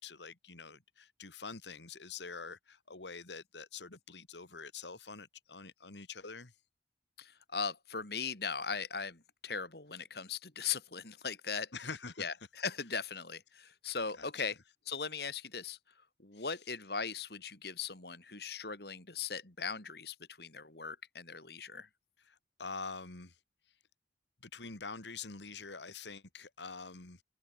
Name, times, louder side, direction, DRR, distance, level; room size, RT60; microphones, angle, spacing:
voice 1, 0.0-6.5 11.7-12.2 14.2-14.3 16.3-16.5 22.2-23.4 24.5-27.2, left 4 dB, 80° left, 2.4 m, -46 dB
voice 2, 7.2-11.7 12.2-14.5 14.9-15.8 16.2-21.9, left 5 dB, 60° left, 2.9 m, -39 dB
head